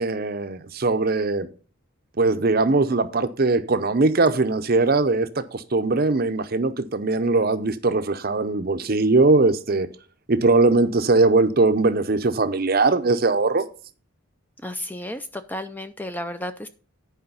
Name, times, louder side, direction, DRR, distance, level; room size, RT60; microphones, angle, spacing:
voice 1, 0.0-1.5 2.2-9.9 10.3-13.6, right 3 dB, 45° right, 0.6 m, -20 dB
voice 2, 14.6-16.7, left 1 dB, 10° left, 0.4 m, -32 dB
10.5 x 5.1 x 5.4 m
head